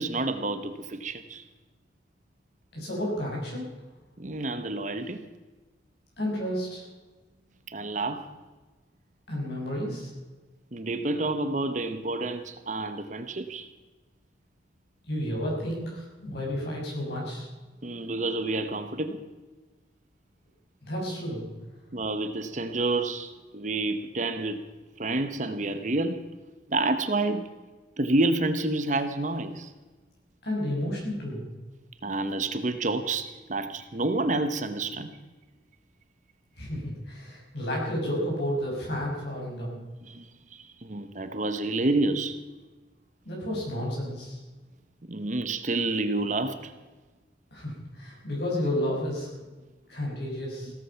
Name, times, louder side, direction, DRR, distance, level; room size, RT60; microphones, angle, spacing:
voice 1, 0.0-1.4 4.2-5.2 7.7-8.3 10.7-13.7 17.8-19.2 21.9-24.6 25.0-26.2 26.7-27.5 28.0-29.7 32.0-35.1 40.0-42.4 45.1-46.7, right 2 dB, 40° right, 9 dB, 1.0 m, -29 dB
voice 2, 2.7-3.7 6.2-6.9 9.3-10.1 15.0-17.5 20.8-21.5 30.4-31.5 36.6-39.8 43.2-44.4 47.5-49.3 49.9-50.7, equal, 55° left, -3 dB, 6.2 m, -31 dB
16.5 x 14.0 x 5.7 m, 1.2 s
head